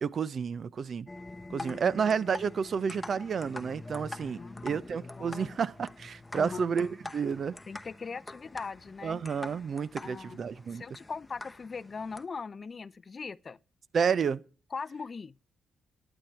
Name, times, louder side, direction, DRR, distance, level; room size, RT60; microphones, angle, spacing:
voice 1, 0.0-1.1 1.5-7.5 9.0-10.8 13.9-14.4, right 6 dB, 55° right, 0.5 m, -30 dB
sound 1, 1.1-12.2, left 2 dB, 15° left, 0.8 m, -45 dB
voice 2, 1.5-2.0 4.3-4.8 5.2-5.6 6.3-6.7 7.7-9.2 10.0-10.4 10.7-13.6 14.7-15.3, left 5 dB, 40° left, 0.5 m, -40 dB
12.0 x 8.9 x 4.5 m
supercardioid pair, 65°, 0 cm